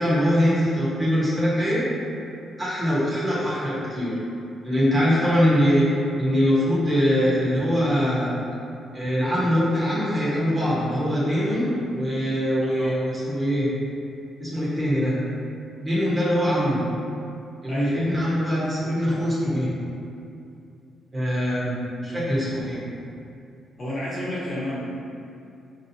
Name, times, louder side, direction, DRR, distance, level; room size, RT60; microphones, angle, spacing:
voice 1, 0.0-1.8 2.6-4.1 4.6-5.8 6.2-8.3 8.9-11.6 11.9-13.7 14.4-15.2 15.8-16.8 17.6-19.7 21.1-21.8 22.0-22.8, equal, 20° right, -8 dB, 0.9 m, -22 dB
voice 2, 12.6-12.9 17.7-18.0 21.2-21.5 23.8-24.9, left 1 dB, 25° left, -9 dB, 1.0 m, -31 dB
4.7 x 2.7 x 2.7 m, 2.5 s
cardioid pair, 150°, 0 cm